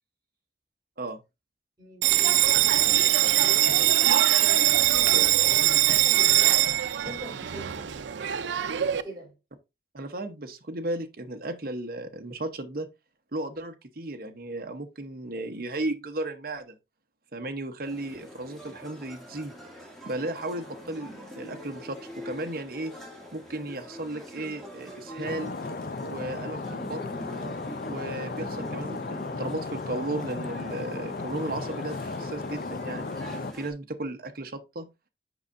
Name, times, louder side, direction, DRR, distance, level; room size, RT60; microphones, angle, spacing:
voice 1, 1.8-8.0 8.9-9.3, right 1 dB, 20° right, 3.5 m, -43 dB
Bell, 2.0-9.0, right 13 dB, 90° right, 0.5 m, -22 dB
voice 2, 9.9-12.9 13.3-16.7 17.3-19.5 20.1-22.9 23.3-25.5 26.1-27.0 27.9-33.1 33.5-34.9, right 2 dB, 55° right, 0.9 m, -35 dB
sound 1, 17.8-33.7, equal, ahead, 2.1 m, -43 dB
Stream, 25.2-33.5, left 3 dB, 50° left, 0.5 m, -35 dB
7.9 x 5.4 x 2.5 m
head